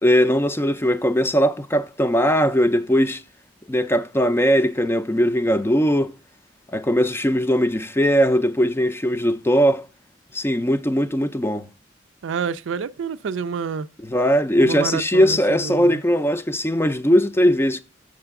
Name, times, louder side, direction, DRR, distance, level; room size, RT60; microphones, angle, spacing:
voice 1, 0.0-3.2 3.7-6.1 6.7-9.9 10.3-11.7 14.0-17.8, equal, 15° left, 0.4 m, -19 dB
voice 2, 12.2-13.9 14.6-16.0, right 6 dB, 80° right, 0.4 m, -28 dB
6.8 x 6.5 x 3.5 m
head